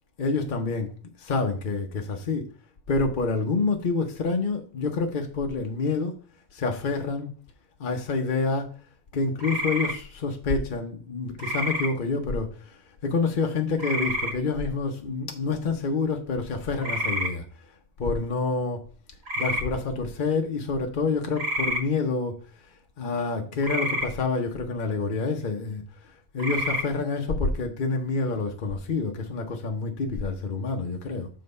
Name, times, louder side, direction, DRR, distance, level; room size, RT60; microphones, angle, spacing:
voice 1, 0.2-0.9 1.2-2.5 2.9-6.2 6.5-7.3 7.8-8.7 9.1-17.4 18.0-18.8 19.4-22.7 23.0-31.3, left 4 dB, 50° left, 1.0 m, -28 dB
sound 1, 9.4-9.9 11.4-11.9 13.8-14.3 16.8-17.3 19.3-19.6 21.3-21.8 23.6-24.1 26.4-26.8, equal, 70° right, 2.1 m, -28 dB
7.4 x 3.9 x 5.3 m
omnidirectional pair, 1.1 m